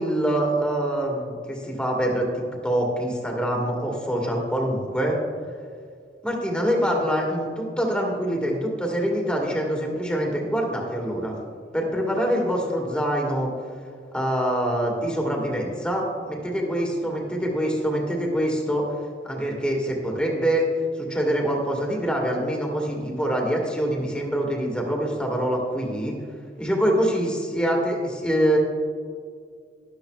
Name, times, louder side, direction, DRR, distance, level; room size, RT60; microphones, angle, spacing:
voice 1, 0.0-2.3 2.6-5.2 6.2-11.4 11.7-13.5 14.1-18.8 19.2-20.6 21.0-26.1 26.6-28.6, equal, 5° left, 0 dB, 1.7 m, -25 dB
12.5 x 11.5 x 2.3 m, 2.1 s
head